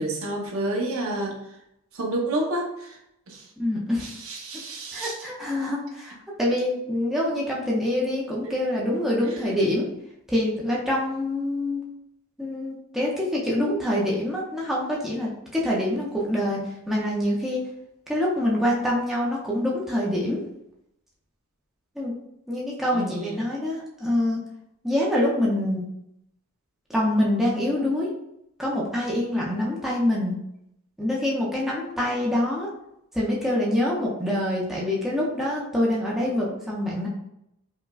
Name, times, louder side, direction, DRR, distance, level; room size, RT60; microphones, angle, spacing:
voice 1, 0.0-1.4 1.9-3.0 3.3-3.4 4.0-5.2 8.4-8.5 22.9-23.5, right 1 dB, 65° right, 0 dB, 0.7 m, -29 dB
voice 2, 3.6-4.1 4.9-9.9 10.3-11.8 12.4-16.6 16.9-17.6 18.1-20.4 22.0-22.1 22.5-24.4 24.8-25.8 26.9-28.1 28.6-30.3 31.0-32.7 33.1-37.1, left 1 dB, ahead, -5 dB, 0.5 m, -25 dB
4.7 x 2.1 x 2.4 m, 0.80 s
head